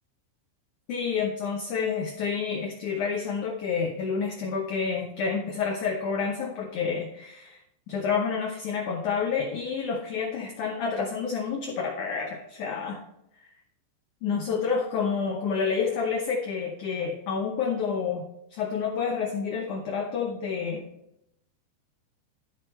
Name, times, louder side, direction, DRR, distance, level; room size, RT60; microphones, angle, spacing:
voice 1, 0.9-7.6 7.9-13.0 14.2-20.9, left 5 dB, 90° left, -1 dB, 1.7 m, -29 dB
12.5 x 6.0 x 3.2 m, 0.83 s
omnidirectional pair, 5.0 m